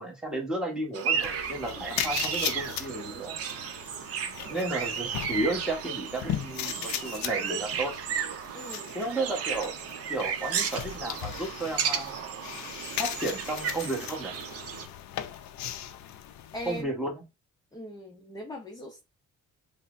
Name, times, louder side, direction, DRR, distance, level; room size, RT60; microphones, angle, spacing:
voice 1, 0.0-3.4 4.4-7.9 8.9-9.7 10.1-12.2 13.0-14.3 16.7-17.3, right 2 dB, ahead, 1.0 m, -33 dB
sound 1, 0.9-14.9, right 7 dB, 50° right, 0.5 m, -34 dB
sound 2, 1.2-16.8, left 10 dB, 65° left, 0.5 m, -38 dB
voice 2, 8.5-8.9 16.5-16.9 17.7-19.0, left 1 dB, 15° left, 0.5 m, -40 dB
5.4 x 2.0 x 2.4 m
cardioid pair, 140°, 30 cm